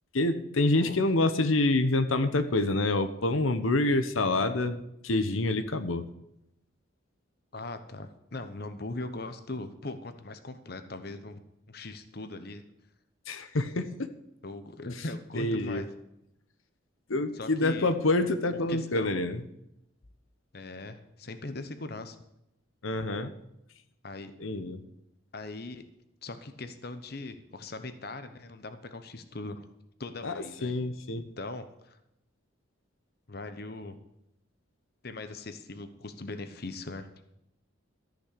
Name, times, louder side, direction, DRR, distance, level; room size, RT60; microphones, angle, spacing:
voice 1, 0.1-6.0 13.3-14.1 15.3-15.9 17.1-19.4 22.8-23.3 24.4-24.8 30.2-30.3 30.6-31.3, left 2 dB, 85° left, 9 dB, 1.0 m, -27 dB
voice 2, 7.5-11.4 11.7-12.6 14.4-15.9 17.3-17.9 18.5-19.2 20.5-22.2 24.0-24.3 25.3-25.9 26.2-29.7 30.0-30.7 31.4-32.0 33.3-34.0 35.0-37.1, left 2 dB, 50° left, 9 dB, 1.0 m, -40 dB
14.0 x 6.3 x 8.2 m, 0.82 s
head